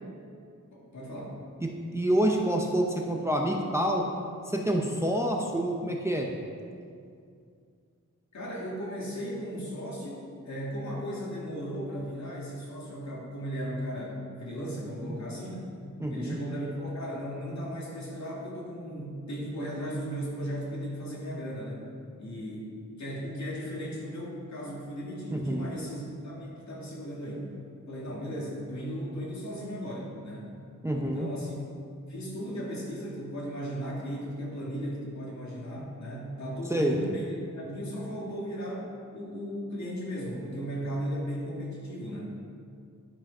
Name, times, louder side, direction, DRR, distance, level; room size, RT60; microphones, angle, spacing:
voice 1, 0.7-1.3 8.3-15.6 16.1-21.9 22.2-27.6 27.9-30.5 30.9-31.5 32.1-38.9 39.1-42.4, equal, 65° left, -5 dB, 2.4 m, -36 dB
voice 2, 1.9-4.0 4.5-6.3 15.0-15.2 16.0-16.4 25.3-25.7 30.8-31.3 36.7-37.0, right 1 dB, 10° right, 0 dB, 0.7 m, -27 dB
11.0 x 6.3 x 5.5 m, 2.3 s
wide cardioid pair, 165°, 31 cm